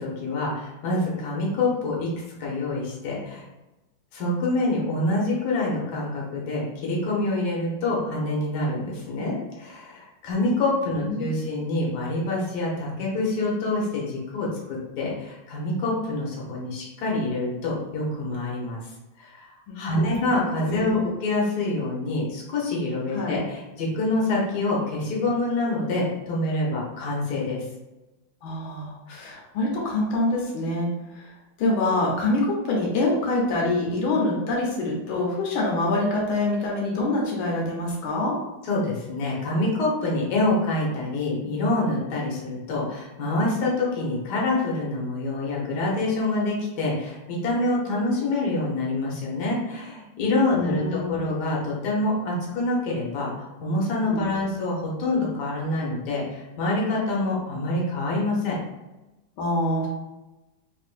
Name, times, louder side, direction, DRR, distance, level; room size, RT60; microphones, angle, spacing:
voice 1, 0.0-2.1 2.4-3.4 4.1-18.8 19.7-27.6 38.6-53.3 53.6-58.6, left 2 dB, 60° left, -4 dB, 1.5 m, -26 dB
voice 2, 10.8-11.3 19.7-20.3 20.6-21.1 23.1-23.4 28.4-30.9 31.2-31.3 31.6-38.4 50.5-51.1 54.0-54.2 59.4-59.9, left 2 dB, 90° left, -3 dB, 1.7 m, -25 dB
3.5 x 3.5 x 2.4 m, 1.0 s
omnidirectional pair, 2.1 m